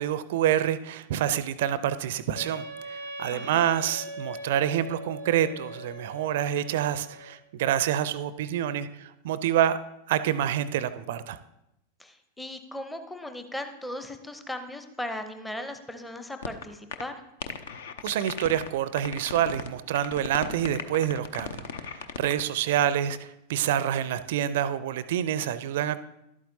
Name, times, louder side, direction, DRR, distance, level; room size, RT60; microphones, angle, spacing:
voice 1, 0.0-9.8 10.1-11.4 18.0-26.0, right 10 dB, 55° right, 14 dB, 0.4 m, -27 dB
Wind instrument woodwind instrument, 2.3-7.4, equal, 85° left, 1.8 m, -41 dB
voice 2, 3.3-3.7 12.0-17.2, left 1 dB, 5° left, 7 dB, 0.7 m, -37 dB
sound 1, 16.4-16.6 16.9-17.0 17.4-18.7 19.0-19.7 20.0-22.4, left 6 dB, 60° left, 0.6 m, -36 dB
11.5 x 8.6 x 2.7 m, 0.86 s
figure-of-eight pair, 90°, 0 cm